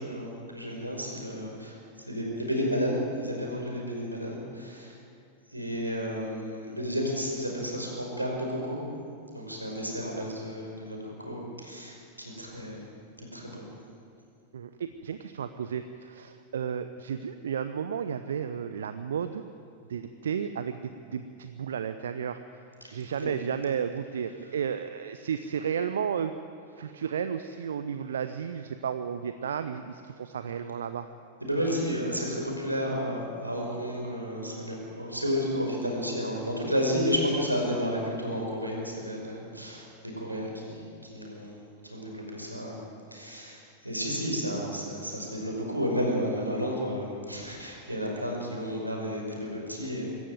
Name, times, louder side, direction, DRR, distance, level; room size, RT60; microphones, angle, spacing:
voice 1, 0.0-1.8 2.1-4.9 5.5-8.8 9.3-12.9 13.2-13.6 22.8-23.3 31.4-41.6 41.8-42.8 43.1-50.1, equal, 85° right, -1 dB, 5.5 m, -32 dB
voice 2, 14.5-19.4 19.9-22.4 22.9-26.3 26.8-31.1, right 7 dB, 65° right, 10 dB, 0.8 m, -33 dB
24.5 x 13.5 x 9.2 m, 2.4 s
figure-of-eight pair, 90°, 0 cm